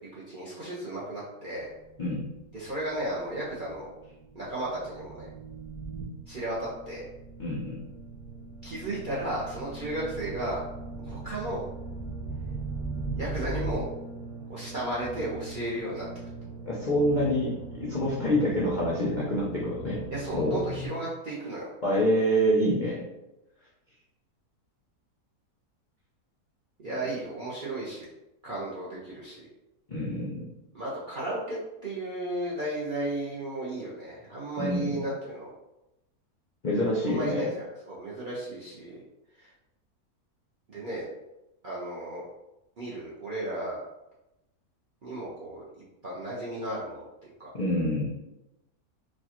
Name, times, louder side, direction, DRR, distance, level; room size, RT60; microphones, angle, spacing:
voice 1, 0.1-1.7 2.5-3.9 4.3-5.3 6.3-7.0 8.6-10.6 11.0-11.6 13.2-13.9 14.5-16.0 20.1-21.7 26.8-28.0 28.4-29.5 30.7-35.5 37.0-39.0 39.4-39.5 40.7-41.1 41.6-42.3 42.8-43.8 45.0-45.6 46.0-47.0 47.4-47.5, right 1 dB, 50° right, -7 dB, 0.6 m, -34 dB
sound 1, 1.6-20.9, right 3 dB, 75° right, 1.2 m, -39 dB
voice 2, 7.4-7.8 16.7-20.0 20.3-20.6 21.8-23.0 29.9-30.5 34.6-34.9 36.6-37.5 47.5-48.1, equal, 55° left, -5 dB, 0.5 m, -26 dB
4.2 x 2.3 x 2.9 m, 0.94 s
omnidirectional pair, 1.7 m